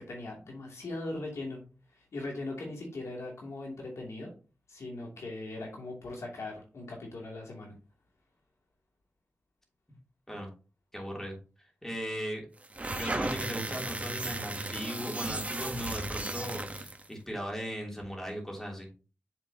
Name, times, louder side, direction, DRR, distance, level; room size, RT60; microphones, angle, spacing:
voice 1, 0.0-1.6 1.9-4.3 4.7-7.8, left 2 dB, 85° left, -1 dB, 2.7 m, -40 dB
voice 2, 10.9-11.4 11.8-12.4 13.0-18.9, equal, 10° left, -1 dB, 3.0 m, -38 dB
sound 1, 12.6-17.1, right 2 dB, 30° right, 1.1 m, -35 dB
7.3 x 6.3 x 2.9 m, 0.35 s
wide cardioid pair, 75°, 5 cm